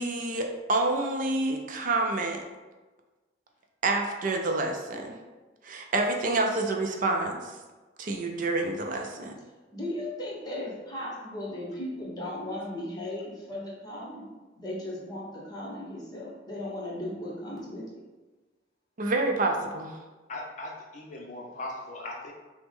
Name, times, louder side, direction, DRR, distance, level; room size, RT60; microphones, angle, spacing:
voice 1, 0.0-2.4 3.8-5.2 5.6-7.5 8.0-9.4 19.0-20.0, right 2 dB, 50° right, 3 dB, 0.4 m, -28 dB
voice 2, 9.7-14.3 14.6-17.9, left 1 dB, 20° left, -4 dB, 1.0 m, -36 dB
voice 3, 20.3-22.3, left 2 dB, 45° left, -1 dB, 0.6 m, -39 dB
5.8 x 2.1 x 3.6 m, 1.2 s
head